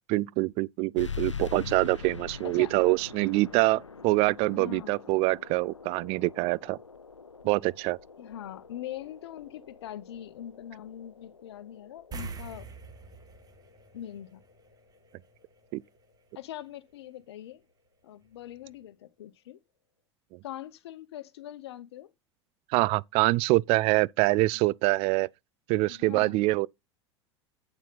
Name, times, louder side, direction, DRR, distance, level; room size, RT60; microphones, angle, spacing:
voice 1, 0.1-6.8 7.4-8.0 15.7-15.8 22.7-25.3 25.7-26.7, right 21 dB, 40° right, 0.4 m, -25 dB
sound 1, 1.0-16.1, left 5 dB, 90° left, 0.6 m, -44 dB
voice 2, 2.4-2.7 4.4-4.9 8.2-12.7 13.9-14.4 16.3-17.6 18.0-19.6 20.4-22.1 25.9-26.4, left 11 dB, 65° left, 1.0 m, -42 dB
sound 2, 12.1-14.9 15.2-15.4 18.3-18.4 18.7-18.8, right 4 dB, 25° right, 2.2 m, -43 dB
8.7 x 7.3 x 4.0 m
figure-of-eight pair, 80°, 15 cm